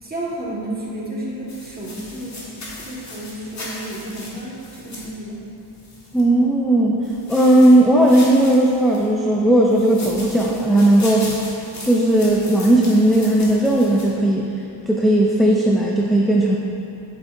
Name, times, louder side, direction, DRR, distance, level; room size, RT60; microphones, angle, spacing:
voice 1, 0.0-5.5, right 1 dB, 20° right, -5 dB, 1.6 m, -32 dB
sound 1, 1.5-6.2 7.0-9.1 9.7-14.0, left 2 dB, 35° left, 1.7 m, -37 dB
voice 2, 6.1-7.0 7.3-11.3 11.8-14.5 14.9-16.6, right 1 dB, ahead, -3 dB, 0.4 m, -16 dB
8.6 x 7.0 x 2.6 m, 2.7 s
cardioid pair, 110°, 47 cm